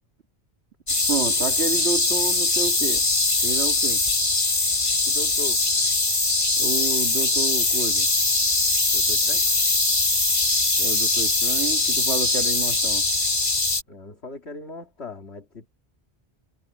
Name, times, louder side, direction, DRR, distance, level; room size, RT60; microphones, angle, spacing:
sound 1, 0.9-13.8, left 2 dB, 45° left, 2.7 m, -22 dB
voice 1, 1.1-3.0 3.4-4.0 6.6-8.1 10.8-13.0, right 4 dB, 75° right, 2.2 m, -30 dB
voice 2, 5.1-5.6 8.9-9.5 13.9-15.7, left 2 dB, 75° left, 2.6 m, -38 dB
omnidirectional pair, 1.1 m